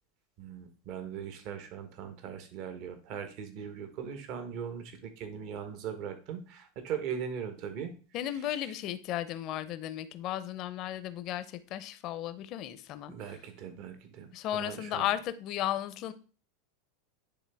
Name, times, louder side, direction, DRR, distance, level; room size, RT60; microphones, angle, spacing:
voice 1, 0.4-7.9 13.1-15.1, right 7 dB, 55° right, 8 dB, 1.2 m, -40 dB
voice 2, 8.1-13.4 14.3-16.1, left 12 dB, 50° left, 13 dB, 0.7 m, -35 dB
10.0 x 3.5 x 3.5 m, 0.37 s
hypercardioid pair, 95°, 0 cm